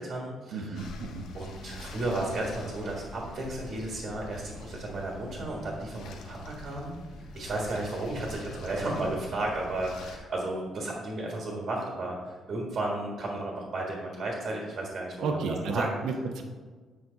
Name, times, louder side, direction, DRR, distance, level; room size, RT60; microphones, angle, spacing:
voice 1, 0.0-0.8 1.3-6.9 7.3-15.9, right 2 dB, 40° right, -1 dB, 1.6 m, -33 dB
voice 2, 0.5-1.3 15.2-16.4, right 4 dB, 75° right, 3 dB, 1.0 m, -32 dB
sound 1, 0.8-10.2, left 3 dB, 85° left, 1.0 m, -45 dB
8.6 x 6.3 x 4.0 m, 1.4 s
cardioid pair, 180°, 0 cm